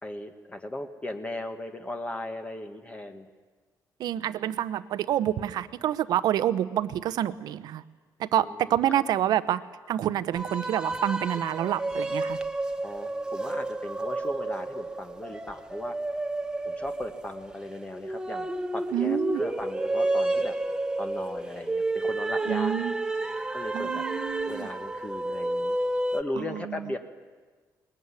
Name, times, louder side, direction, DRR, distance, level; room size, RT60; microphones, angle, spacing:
voice 1, 0.0-3.3 8.4-8.7 12.8-16.0 16.6-20.6 21.0-22.7 23.5-24.0 24.4-25.8 26.1-27.0, left 1 dB, 20° left, 6 dB, 1.4 m, -37 dB
voice 2, 4.0-7.8 8.2-9.6 9.9-12.4 18.9-19.4 22.5-22.9 23.7-24.7 26.4-26.9, right 11 dB, 75° right, 14 dB, 0.9 m, -27 dB
sound 1, 10.3-26.2, right 2 dB, 10° right, 1.0 m, -30 dB
20.5 x 20.5 x 9.8 m, 1.4 s
cardioid pair, 140°, 7 cm